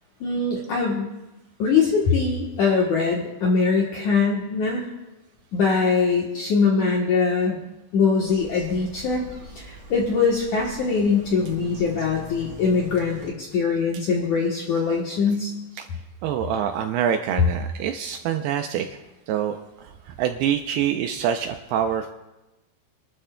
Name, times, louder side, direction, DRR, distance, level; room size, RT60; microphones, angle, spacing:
voice 1, 0.2-1.1 1.6-4.9 5.5-7.6 7.9-9.2 9.6-15.5, left 5 dB, 70° left, -2 dB, 1.8 m, -22 dB
Bird vocalization bird call bird song, 8.3-13.3, right 1 dB, 50° right, 1.0 m, -42 dB
voice 2, 16.2-19.0 19.3-22.1, right 9 dB, 80° right, 6 dB, 2.3 m, -26 dB
28.0 x 12.5 x 2.2 m, 1.0 s
omnidirectional pair, 5.1 m